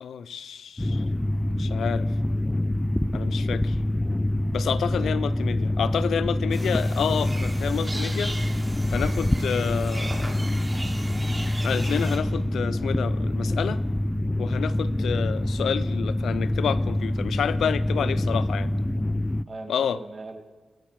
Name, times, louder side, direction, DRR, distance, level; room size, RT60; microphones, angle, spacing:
voice 1, 0.0-1.0 1.5-2.1 3.1-3.8 4.5-8.4 8.9-10.4 11.6-13.8 14.4-18.7 19.7-20.0, left 8 dB, 85° left, 16 dB, 0.4 m, -29 dB
sound 1, 0.8-19.4, left 1 dB, 15° left, 0.3 m, -26 dB
sound 2, 6.5-12.2, right 1 dB, 20° right, 3.4 m, -38 dB
voice 2, 18.0-18.4 19.5-20.5, right 3 dB, 45° right, 6 dB, 1.8 m, -41 dB
26.0 x 8.9 x 4.7 m, 1.3 s
cardioid pair, 70°, 0 cm